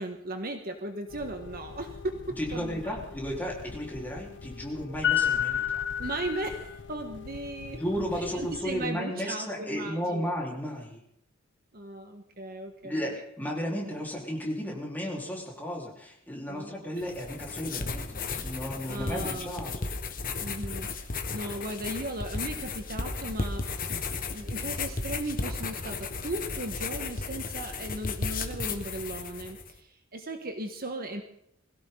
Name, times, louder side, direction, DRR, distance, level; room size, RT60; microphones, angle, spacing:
voice 1, 0.0-2.9 6.0-7.8 8.2-10.3 11.7-13.1 16.5-16.8 18.9-19.6 20.4-23.9 24.3-31.2, right 1 dB, 45° right, 6 dB, 1.5 m, -37 dB
sound 1, 1.1-8.9, left 9 dB, 60° left, 0.8 m, -34 dB
voice 2, 2.4-5.8 7.7-11.0 12.8-19.9, equal, 10° left, -3 dB, 4.2 m, -34 dB
sound 2, 17.0-29.7, left 4 dB, 45° left, 1.4 m, -34 dB
22.5 x 16.5 x 3.9 m, 0.74 s
head